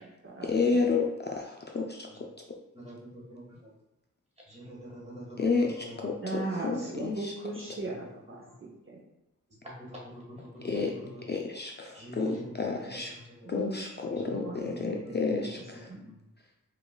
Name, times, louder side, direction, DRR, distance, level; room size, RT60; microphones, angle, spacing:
voice 1, 0.4-2.1 5.4-7.3 10.6-11.0 11.3-13.2 13.5-15.9, left 4 dB, 35° left, 0 dB, 0.4 m, -30 dB
voice 2, 2.7-3.7 4.5-6.0 6.7-6.9 7.9-8.0 8.3-8.4 9.6-11.2 11.9-12.5 13.1-13.5 14.2-15.3 15.9-16.2, equal, 20° right, -4 dB, 1.4 m, -46 dB
voice 3, 6.2-9.0 13.6-13.9 14.3-14.6 14.8-15.5 15.9-16.1, right 2 dB, 40° right, -3 dB, 0.7 m, -38 dB
5.0 x 2.4 x 2.2 m, 0.95 s
cardioid pair, 45°, 33 cm